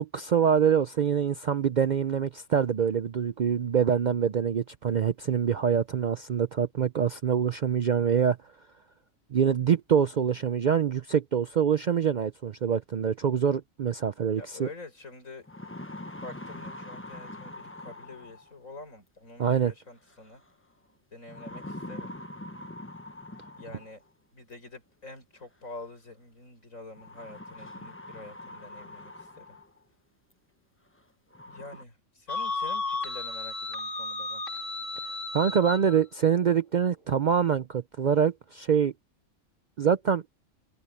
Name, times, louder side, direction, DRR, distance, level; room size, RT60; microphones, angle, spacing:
voice 1, 0.0-8.4 9.3-14.7 19.4-19.7 35.3-38.9 39.8-40.2, right 7 dB, 60° right, 0.5 m, -25 dB
voice 2, 14.4-15.5 16.2-20.4 21.1-22.1 23.6-24.0 24.3-29.6 31.5-34.4, left 2 dB, 90° left, 7.0 m, -46 dB
sound 1, 14.7-14.8 15.3-18.7 20.1-20.5 21.3-24.1 25.3-25.4 26.9-29.8 30.3-30.4 30.9-31.0 31.3-31.8, left 1 dB, 10° left, 0.9 m, -43 dB
sound 2, 32.3-36.0, left 3 dB, 65° left, 2.8 m, -34 dB
omnidirectional pair, 1.3 m